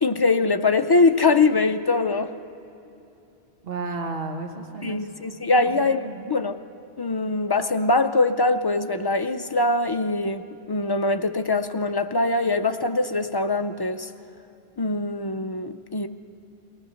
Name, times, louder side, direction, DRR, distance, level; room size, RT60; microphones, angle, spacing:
voice 1, 0.0-2.3 4.8-6.6 7.0-14.1 14.8-16.1, left 3 dB, 40° left, 8 dB, 0.3 m, -22 dB
voice 2, 3.6-5.0 5.5-6.2, right 3 dB, 65° right, 3 dB, 1.5 m, -33 dB
23.0 x 17.5 x 6.5 m, 2.8 s
omnidirectional pair, 1.1 m